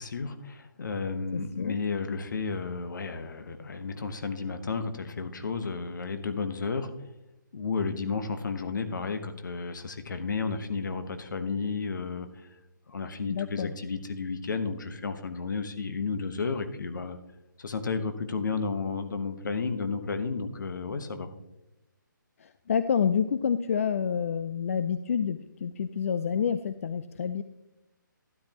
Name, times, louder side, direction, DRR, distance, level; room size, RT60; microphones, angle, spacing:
voice 1, 0.0-6.9 7.5-12.5 12.9-17.2 17.6-21.3, left 4 dB, 65° left, 9 dB, 1.2 m, -32 dB
voice 2, 1.3-1.8 13.3-13.7 22.4-27.4, left 7 dB, 40° left, 12 dB, 0.4 m, -28 dB
12.5 x 10.5 x 3.0 m, 0.91 s
hypercardioid pair, 165°, 11 cm